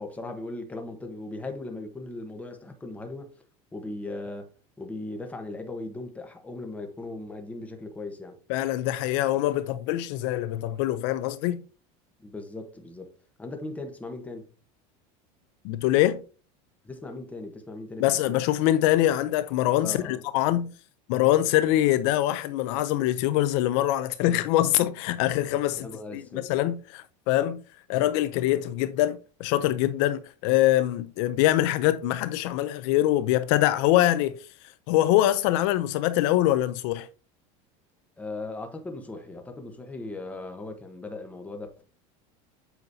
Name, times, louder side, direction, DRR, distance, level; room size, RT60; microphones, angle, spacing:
voice 1, 0.0-3.3 3.7-4.5 4.8-8.4 12.2-13.1 13.4-14.5 16.8-18.4 19.8-20.2 25.8-26.4 38.2-41.8, left 2 dB, 10° left, 1.1 m, -38 dB
voice 2, 8.5-11.6 15.6-16.2 18.0-20.7 21.1-25.9 26.1-27.6 27.9-34.4 34.9-37.1, left 14 dB, 60° left, 0.5 m, -24 dB
8.2 x 5.1 x 2.7 m
supercardioid pair, 155°, 17 cm